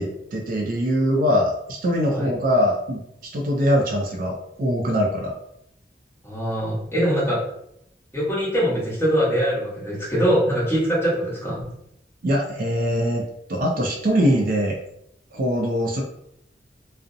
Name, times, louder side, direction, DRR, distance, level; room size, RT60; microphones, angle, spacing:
voice 1, 0.0-3.0 3.3-5.3 12.2-14.8 15.3-16.0, equal, 50° right, 0 dB, 0.4 m, -22 dB
voice 2, 6.2-7.4 8.1-11.6, equal, 15° left, -7 dB, 1.0 m, -22 dB
2.5 x 2.0 x 2.5 m, 0.77 s
head